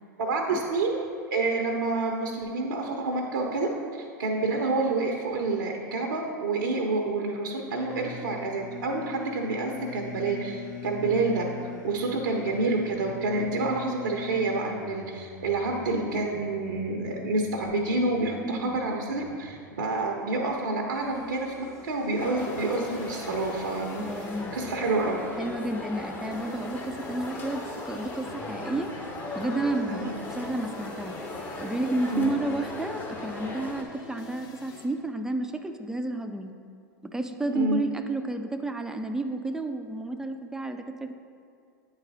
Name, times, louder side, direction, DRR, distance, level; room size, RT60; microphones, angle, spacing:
voice 1, 0.2-11.4 11.8-21.5 21.8-24.0 24.5-25.2 29.9-30.1 32.1-32.4 37.5-37.8, right 3 dB, 80° right, 1 dB, 0.7 m, -28 dB
sound 1, 7.7-19.6, left 4 dB, 60° left, 1.1 m, -42 dB
voice 2, 18.4-18.8 23.9-24.5 25.4-28.9 29.4-36.5 37.1-41.1, right 2 dB, 5° right, 6 dB, 0.4 m, -31 dB
sound 2, 20.9-34.9, left 4 dB, 40° left, 1.2 m, -48 dB
sound 3, 22.2-33.8, left 2 dB, 15° left, 0.9 m, -37 dB
8.8 x 4.0 x 4.1 m, 2.4 s
hypercardioid pair, 95°, 10 cm